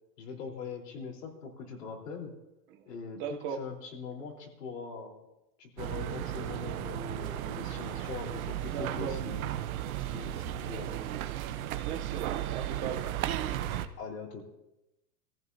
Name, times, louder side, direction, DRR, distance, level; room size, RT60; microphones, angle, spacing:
voice 1, 0.2-2.3 2.9-3.2 3.6-5.2 5.6-9.5 10.1-11.0 14.0-14.5, left 5 dB, 80° left, 0 dB, 4.2 m, -42 dB
voice 2, 3.1-3.6 8.7-9.2 11.8-13.2, right 7 dB, 25° right, 5 dB, 0.9 m, -38 dB
sound 1, 5.8-13.9, right 12 dB, 60° right, 1.1 m, -35 dB
25.0 x 15.0 x 2.8 m, 0.93 s
supercardioid pair, 155°, 47 cm